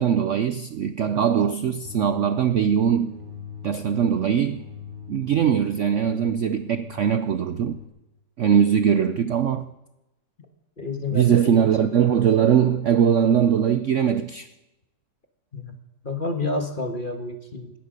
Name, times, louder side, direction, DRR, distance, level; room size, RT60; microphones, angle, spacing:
voice 1, 0.0-3.2 3.6-4.6 5.1-7.8 8.4-9.7 11.1-14.5, right 8 dB, 65° right, 0.7 m, -21 dB
sound 1, 1.8-7.9, left 5 dB, 40° right, 5.4 m, -41 dB
voice 2, 10.8-11.6 15.5-15.8 16.0-17.8, left 2 dB, 30° left, 1.5 m, -29 dB
18.0 x 13.0 x 5.2 m
omnidirectional pair, 1.9 m